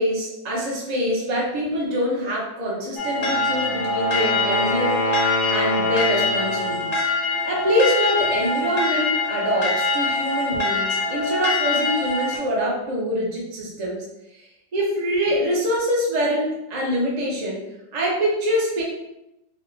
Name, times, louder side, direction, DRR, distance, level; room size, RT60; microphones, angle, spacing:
voice 1, 0.0-7.0 7.4-14.0 14.7-17.6 17.9-18.8, equal, 50° right, -4 dB, 0.4 m, -24 dB
sound 1, 3.0-12.4, left 2 dB, 60° left, 1.0 m, -24 dB
Wind instrument woodwind instrument, 3.0-6.8, left 2 dB, 40° left, 0.5 m, -27 dB
4.6 x 2.1 x 2.6 m, 0.90 s
omnidirectional pair, 1.9 m